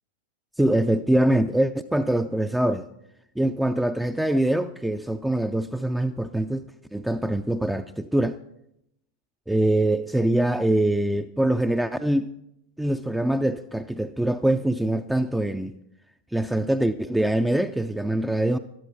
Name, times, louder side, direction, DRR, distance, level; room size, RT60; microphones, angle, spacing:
voice 1, 0.6-2.9 3.4-6.7 6.9-8.4 9.5-12.3 12.8-15.7 16.3-18.6, right 1 dB, 5° right, 0.4 m, -23 dB
13.0 x 11.5 x 4.4 m
figure-of-eight pair, 90°, 0 cm